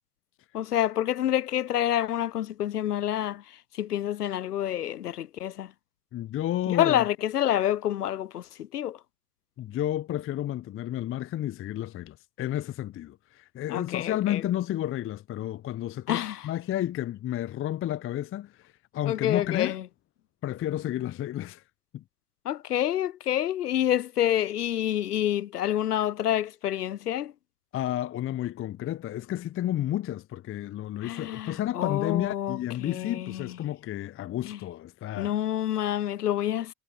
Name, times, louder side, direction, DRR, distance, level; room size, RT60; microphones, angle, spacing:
voice 1, 0.5-3.4 3.8-5.7 6.7-9.0 13.7-14.4 16.1-16.4 19.1-19.8 22.5-27.3 31.0-33.5 34.5-34.6 35.2-36.7, left 11 dB, 85° left, 0.6 m, -28 dB
voice 2, 6.1-7.1 9.6-19.8 20.4-21.6 21.9-22.0 27.7-35.3, left 13 dB, 30° left, 0.7 m, -31 dB
figure-of-eight pair, 65°, 45 cm